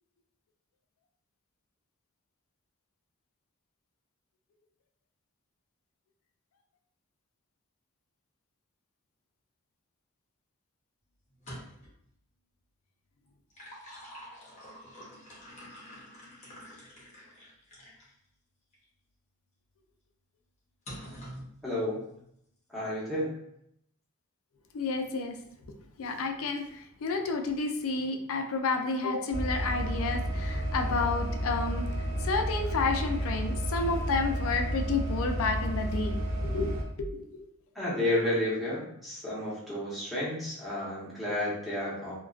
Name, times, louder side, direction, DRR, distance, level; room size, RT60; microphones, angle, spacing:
sound 1, 11.3-12.0 13.3-18.1 18.7-18.8 20.9-21.5, equal, 30° left, 0.7 m, -47 dB
voice 1, 21.6-22.0 22.7-23.3 37.7-42.1, left 1 dB, ahead, -9 dB, 0.9 m, -31 dB
voice 2, 24.7-25.4 26.0-36.1 36.4-37.3, left 3 dB, 65° left, 4 dB, 0.4 m, -31 dB
sound 2, 29.3-36.8, equal, 65° right, 1.0 m, -31 dB
2.4 x 2.2 x 2.3 m, 0.74 s
head